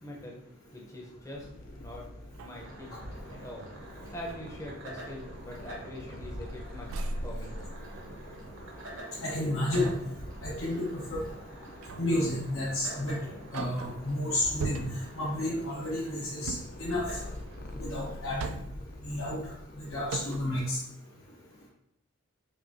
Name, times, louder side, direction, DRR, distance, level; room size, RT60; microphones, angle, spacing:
voice 1, 0.0-0.4 0.7-1.5 1.8-2.0 2.3-3.0 3.3-3.7 4.1-7.5, left 1 dB, 15° left, -2 dB, 0.7 m, -43 dB
Purr, 1.3-20.6, left 1 dB, 40° left, 0.4 m, -47 dB
sound 1, 1.7-1.8 2.2-3.5 4.0-4.4 5.0-5.2 5.6-6.5 6.9-8.4 9.7-10.2 11.8-12.2 12.7-12.8 13.3-14.1 14.6-15.2 16.4-16.9 18.0-18.9 19.6-19.7 20.1-20.6, right 3 dB, 80° right, 0.3 m, -40 dB
sound 2, 2.5-18.1, right 1 dB, 60° right, 0.9 m, -46 dB
voice 2, 9.2-9.9 10.4-11.2 12.0-13.2 13.5-17.0 17.7-18.6 19.0-19.5 19.8-20.8, left 1 dB, 70° left, -6 dB, 0.8 m, -31 dB
5.3 x 2.5 x 2.7 m, 0.78 s
head